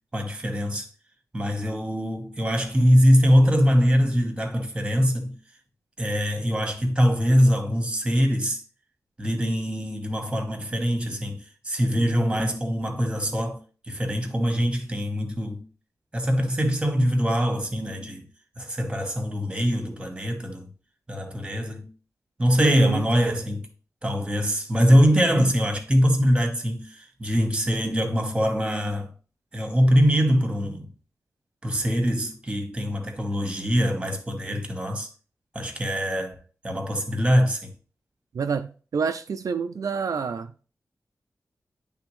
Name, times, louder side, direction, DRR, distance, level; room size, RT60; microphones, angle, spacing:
voice 1, 0.1-0.9 1.3-5.4 6.0-8.6 9.2-13.6 13.8-15.6 16.1-18.2 18.6-20.7 21.1-21.9 22.4-23.7 24.0-29.1 29.5-30.9 31.6-35.1 35.5-36.4 36.6-37.7, equal, 15° right, 1.3 m, -23 dB
voice 2, 12.0-12.3 22.6-23.0 38.3-40.5, right 6 dB, 75° right, 0.4 m, -28 dB
10.5 x 3.5 x 3.2 m
wide cardioid pair, 130°, 6 cm